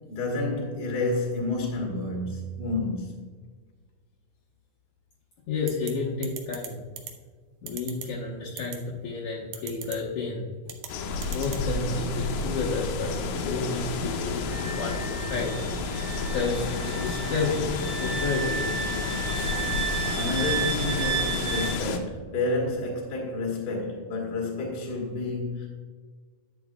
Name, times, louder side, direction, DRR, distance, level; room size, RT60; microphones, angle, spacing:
voice 1, 0.1-3.2 20.1-25.7, left 2 dB, 35° left, 1.7 m, -30 dB
voice 2, 5.5-6.8 7.6-10.4 11.3-15.5 16.2-16.7 17.0-18.6, left 4 dB, 65° left, 2.1 m, -31 dB
sound 1, 5.7-5.9 6.2-6.7 7.0-7.1 7.7-8.1 8.6-8.8 9.5-10.0 10.7-10.9 11.2-11.6, right 10 dB, 75° right, 2.2 m, -37 dB
sound 2, 10.9-22.0, left 4 dB, 80° left, 2.7 m, -30 dB
Wind instrument woodwind instrument, 14.5-21.8, right 7 dB, 90° right, 1.3 m, -33 dB
11.0 x 8.4 x 2.3 m
omnidirectional pair, 4.5 m